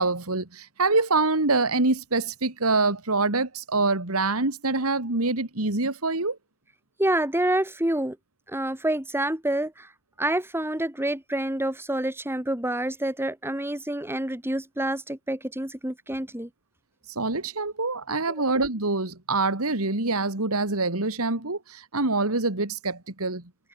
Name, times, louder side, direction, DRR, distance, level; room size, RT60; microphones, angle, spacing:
voice 1, 0.0-6.4 17.2-23.4, right 3 dB, 70° right, 2.7 m, -25 dB
voice 2, 7.0-8.2 8.5-9.9 10.2-16.5, right 1 dB, 10° right, 2.9 m, -27 dB
head